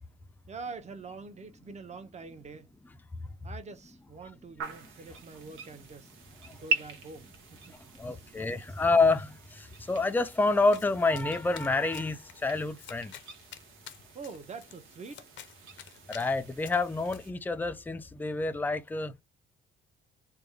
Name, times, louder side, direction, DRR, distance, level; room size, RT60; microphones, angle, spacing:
voice 1, 0.5-2.7 3.4-6.1 6.5-7.8 8.1-8.3 8.6-8.9 14.1-15.3, right 4 dB, 35° right, 0.7 m, -45 dB
sound 1, 4.6-17.3, right 3 dB, 90° right, 0.9 m, -42 dB
voice 2, 7.7-13.1 16.1-19.2, left 3 dB, 10° left, 0.4 m, -28 dB
Domestic sounds home sounds, 10.7-17.2, left 10 dB, 70° left, 0.6 m, -51 dB
3.4 x 2.1 x 3.3 m
cardioid pair, 90°, 20 cm